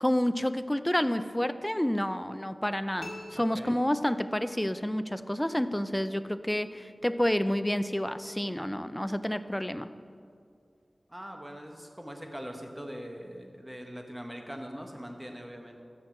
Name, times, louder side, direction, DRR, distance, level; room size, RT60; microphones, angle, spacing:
voice 1, 0.0-9.9, left 1 dB, 10° left, 12 dB, 0.4 m, -29 dB
sound 1, 3.0-4.6, left 2 dB, 55° left, 2.4 m, -46 dB
voice 2, 3.3-3.8 11.1-15.8, equal, 15° right, 3 dB, 1.3 m, -42 dB
14.0 x 6.0 x 4.7 m, 2.3 s
wide cardioid pair, 50°, 0 cm